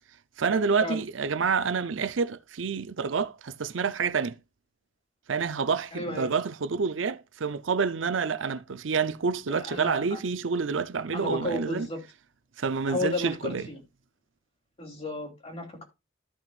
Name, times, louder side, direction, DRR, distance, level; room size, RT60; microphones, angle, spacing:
voice 1, 0.4-4.4 5.3-11.9 12.6-13.7, right 5 dB, 75° right, 0.6 m, -28 dB
voice 2, 5.9-6.3 9.5-10.2 11.1-12.0 12.9-13.8 14.8-15.8, left 2 dB, 30° left, 3.0 m, -33 dB
13.5 x 6.0 x 2.4 m
head